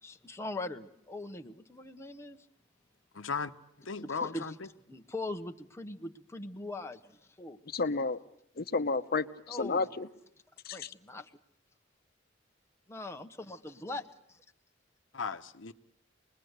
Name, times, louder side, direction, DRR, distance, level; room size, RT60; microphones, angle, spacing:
voice 1, 0.0-2.4 4.0-4.5 4.9-7.6 9.5-9.9 10.7-11.3 12.9-14.4, left 2 dB, 15° left, 0.9 m, -41 dB
voice 2, 3.1-3.5 3.9-4.7 15.1-15.7, left 5 dB, 80° left, 0.9 m, -36 dB
voice 3, 7.7-8.2 8.6-10.1 10.6-10.9, left 3 dB, 50° left, 0.9 m, -31 dB
26.0 x 20.5 x 8.0 m
head